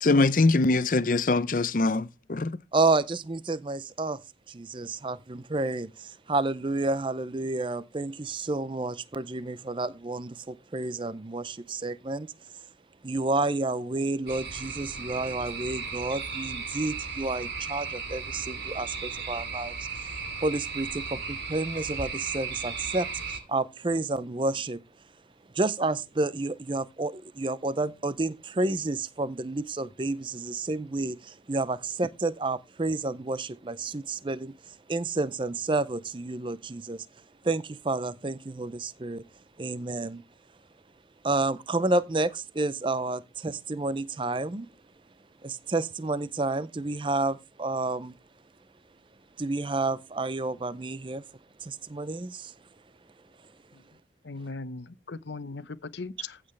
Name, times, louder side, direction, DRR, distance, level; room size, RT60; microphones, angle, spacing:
voice 1, 0.0-2.6, left 3 dB, 50° left, 0.6 m, -23 dB
voice 2, 2.7-4.2 4.5-12.7 13.0-20.1 20.4-24.8 25.5-39.3 39.6-40.2 41.2-44.7 45.4-48.1 49.4-51.3 51.6-52.6 53.4-53.5, right 2 dB, 30° right, 0.5 m, -30 dB
sound 1, 14.3-23.4, right 5 dB, 70° right, 2.7 m, -36 dB
voice 3, 54.2-56.4, left 3 dB, 85° left, 0.8 m, -39 dB
15.0 x 7.4 x 3.2 m
head